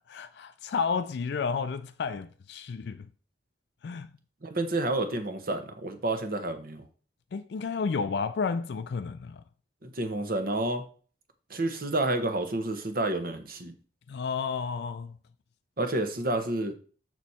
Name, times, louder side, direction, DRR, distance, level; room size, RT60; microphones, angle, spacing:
voice 1, 0.1-3.1 3.8-4.1 7.3-9.4 14.1-15.2, left 5 dB, 65° left, 0.4 m, -31 dB
voice 2, 4.4-6.9 9.8-10.8 11.5-13.7 15.8-16.7, right 2 dB, 55° right, 1.1 m, -29 dB
6.3 x 6.2 x 4.2 m
head